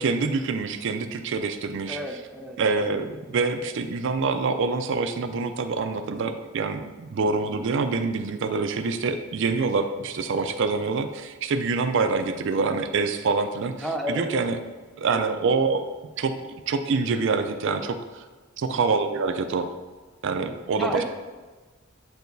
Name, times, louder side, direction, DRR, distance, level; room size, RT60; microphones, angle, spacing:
voice 1, 0.0-2.2 2.6-13.7 14.1-14.6 15.0-15.8 16.2-16.3 16.7-18.2 18.6-19.7 20.2-21.0, right 4 dB, 65° right, 8 dB, 0.4 m, -26 dB
voice 2, 1.9-2.9 7.2-7.6 13.8-14.4 15.1-15.3 18.7-18.8 20.8-21.0, equal, ahead, 2 dB, 0.5 m, -33 dB
7.9 x 4.7 x 2.6 m, 1.3 s
head